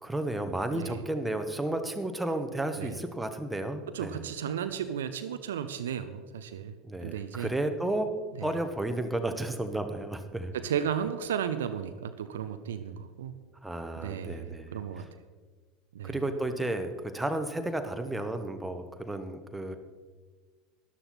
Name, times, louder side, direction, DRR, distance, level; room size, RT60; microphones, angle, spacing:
voice 1, 0.0-4.2 6.8-8.1 8.4-10.5 13.6-15.1 16.0-19.8, right 1 dB, 5° right, 7 dB, 1.2 m, -32 dB
voice 2, 0.7-1.0 2.8-3.0 3.9-6.8 7.0-7.5 8.4-8.5 10.5-13.3 14.0-15.1 15.9-16.2, right 8 dB, 70° right, 10 dB, 0.6 m, -34 dB
13.0 x 11.5 x 4.3 m, 1.4 s
figure-of-eight pair, 75°, 0 cm